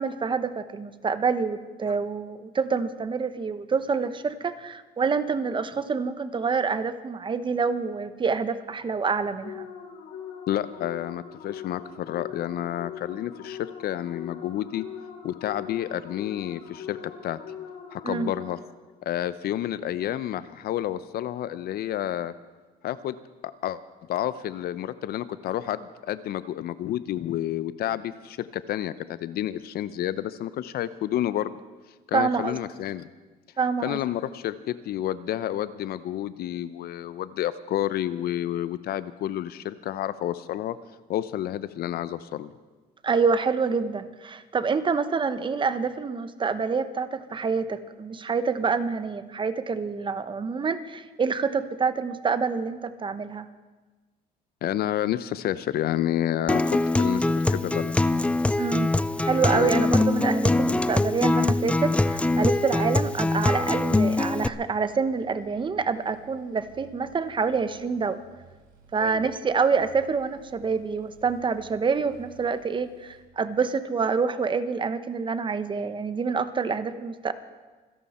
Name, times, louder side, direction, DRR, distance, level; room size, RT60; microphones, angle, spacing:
voice 1, 0.0-9.7 18.0-18.3 32.1-32.6 33.6-34.0 43.0-53.5 58.6-58.9 59.2-68.2 68.9-77.3, right 5 dB, 30° right, 12 dB, 0.9 m, -27 dB
sound 1, 9.4-18.8, left 7 dB, 85° left, 2.2 m, -41 dB
voice 2, 10.5-14.8 15.2-17.0 17.2-17.4 17.9-18.6 19.0-22.3 22.8-23.2 23.4-23.8 24.1-31.6 32.1-33.1 33.8-40.8 41.1-42.5 54.6-57.9 59.5-59.8 69.0-69.3, left 12 dB, 65° left, 15 dB, 0.7 m, -30 dB
Acoustic guitar, 56.5-64.5, left 2 dB, 5° left, 0.4 m, -23 dB
sound 2, 60.1-73.2, right 5 dB, 55° right, 5.6 m, -55 dB
26.0 x 11.0 x 4.3 m, 1.3 s
cardioid pair, 110°, 17 cm